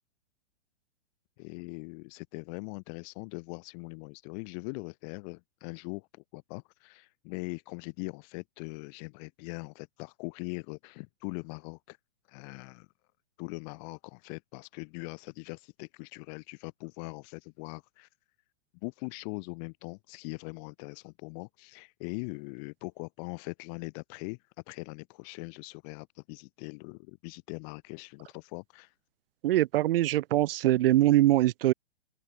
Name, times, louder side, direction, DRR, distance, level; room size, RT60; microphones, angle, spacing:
voice 1, 1.4-12.0 12.3-12.9 13.4-18.1 18.8-24.4 24.7-28.9, left 37 dB, 35° left, 1.2 m, -41 dB
voice 2, 29.4-31.7, right 15 dB, 55° right, 0.5 m, -23 dB
hypercardioid pair, 125°, 35 cm